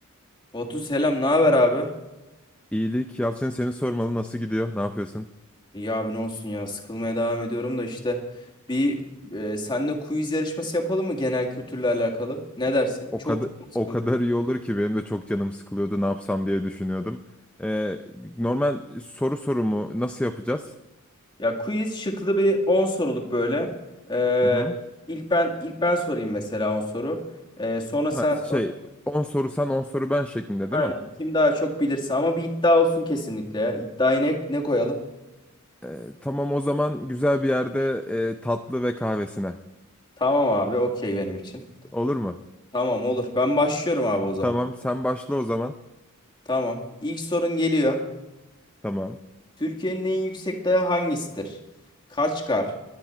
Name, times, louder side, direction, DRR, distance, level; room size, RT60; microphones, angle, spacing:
voice 1, 0.5-1.9 5.7-8.2 8.7-13.3 13.9-14.0 21.4-23.7 24.1-24.7 25.1-27.2 27.6-28.6 30.7-35.0 40.2-41.6 42.7-44.5 46.5-48.0 49.6-51.6 52.1-52.7, left 1 dB, 20° left, 1 dB, 2.0 m, -24 dB
voice 2, 2.7-5.3 13.3-17.2 17.6-20.7 24.4-24.7 28.1-28.7 29.1-30.9 35.8-39.6 41.9-42.4 44.4-45.7 48.8-49.2, left 1 dB, 5° left, 7 dB, 0.5 m, -26 dB
23.0 x 9.7 x 4.4 m, 1.0 s
head